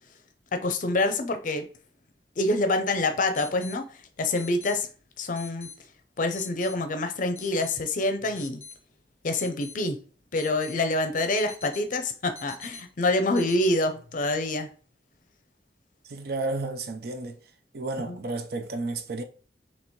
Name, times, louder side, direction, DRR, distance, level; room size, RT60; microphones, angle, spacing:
voice 1, 0.5-1.6 2.4-3.8 4.2-4.9 5.2-5.7 6.2-8.6 9.2-10.0 10.3-14.7 18.1-18.2, left 2 dB, 45° left, 0.5 m, -26 dB
sound 1, 2.7-2.8 3.4-3.8 4.4-4.8 5.4-5.8 6.4-6.8 7.4-7.8 8.4-8.8 9.4-9.8 10.4-10.8 11.4-11.9 12.4-12.8 13.4-13.7, left 5 dB, 10° left, 0.9 m, -44 dB
voice 2, 16.0-17.4 17.7-19.2, right 2 dB, 60° right, 0.5 m, -32 dB
2.9 x 2.9 x 4.4 m
head